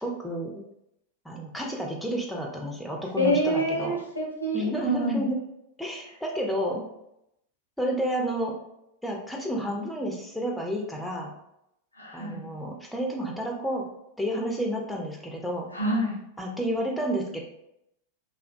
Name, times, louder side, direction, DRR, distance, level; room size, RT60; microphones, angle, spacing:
voice 1, 0.0-0.6 1.2-4.0 4.5-5.4 5.8-6.9 7.8-8.6 9.0-11.3 12.1-13.9 14.2-15.7 16.4-17.4, equal, 5° left, 0 dB, 0.4 m, -30 dB
voice 2, 3.2-5.2 12.0-12.5 15.7-16.2, equal, 85° left, -1 dB, 0.6 m, -27 dB
2.4 x 2.1 x 2.4 m, 0.81 s
figure-of-eight pair, 90°, 0 cm